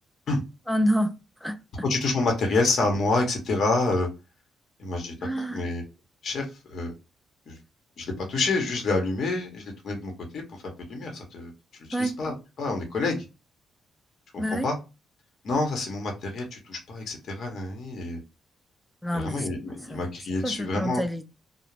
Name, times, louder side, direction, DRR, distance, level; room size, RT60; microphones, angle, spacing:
voice 1, 0.7-1.1 1.4-1.6 5.2-5.6 11.9-12.1 14.4-14.7 19.0-20.1 20.4-21.3, equal, 5° left, 0.4 m, -28 dB
voice 2, 1.8-4.1 4.8-5.8 6.2-6.9 7.5-7.6 8.0-10.4 10.9-11.5 12.0-13.2 14.3-14.8 15.4-18.2 19.1-21.0, left 3 dB, 60° left, 0.9 m, -28 dB
2.4 x 2.0 x 3.1 m
cardioid pair, 90°, 0 cm